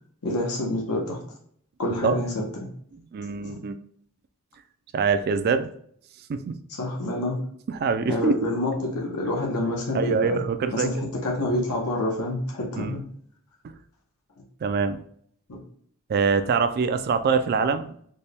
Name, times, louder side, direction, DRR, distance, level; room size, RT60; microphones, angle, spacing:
voice 1, 0.2-1.2 1.8-2.4 6.8-7.4 8.1-10.4 10.7-13.0 15.5-15.6, left 1 dB, 85° left, -1 dB, 0.8 m, -27 dB
voice 2, 3.1-3.7 4.9-5.7 6.3-6.5 7.7-8.4 9.9-10.9 12.8-13.0 13.6-13.7 14.6-15.0 16.1-18.0, right 5 dB, 45° right, 9 dB, 0.3 m, -24 dB
4.2 x 2.2 x 3.3 m, 0.62 s
head